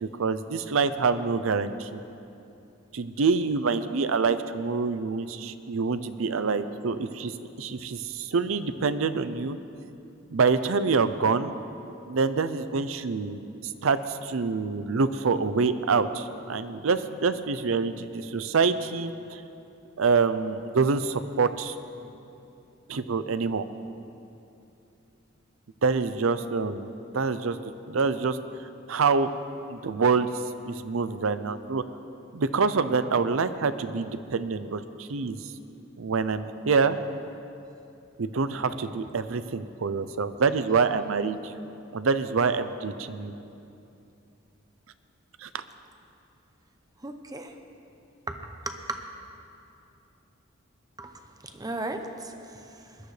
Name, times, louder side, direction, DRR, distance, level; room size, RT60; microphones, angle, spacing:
voice 1, 0.0-2.0 2.9-9.6 10.3-11.5 12.1-13.4 13.8-19.4 20.0-21.8 22.9-23.6 25.8-27.6 27.9-28.4 28.9-29.3 29.7-30.3 30.6-31.8 32.3-35.4 36.0-37.0 38.2-41.5 41.9-43.3 45.4-45.6, right 4 dB, 80° right, 12 dB, 0.6 m, -26 dB
voice 2, 47.0-47.6 48.3-48.4 48.6-49.0 51.0-53.0, right 2 dB, 20° right, 5 dB, 0.8 m, -36 dB
20.5 x 12.0 x 3.3 m, 2.7 s
head